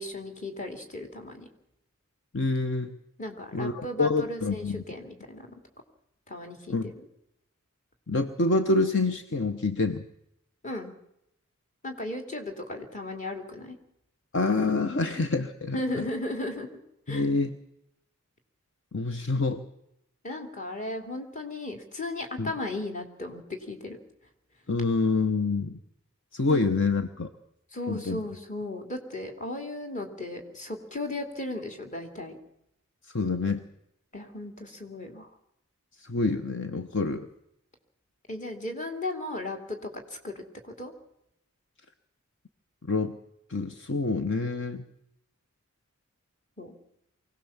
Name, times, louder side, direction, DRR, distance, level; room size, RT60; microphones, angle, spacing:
voice 1, 0.0-1.5 3.2-5.5 6.3-6.9 10.6-10.9 11.8-13.8 15.7-16.7 17.1-17.3 20.2-24.0 26.5-26.6 27.7-32.4 34.1-35.3 38.3-40.9 46.6-46.7, left 2 dB, 40° left, 4 dB, 3.0 m, -36 dB
voice 2, 2.3-2.9 3.5-4.8 6.7-6.9 8.1-10.1 14.3-16.1 17.1-17.6 18.9-19.6 22.4-22.5 24.7-25.8 26.3-27.3 27.9-28.2 33.1-33.6 36.0-37.3 42.9-43.1 43.5-44.8, left 3 dB, 60° left, 8 dB, 1.0 m, -27 dB
24.5 x 17.5 x 7.3 m, 0.80 s
head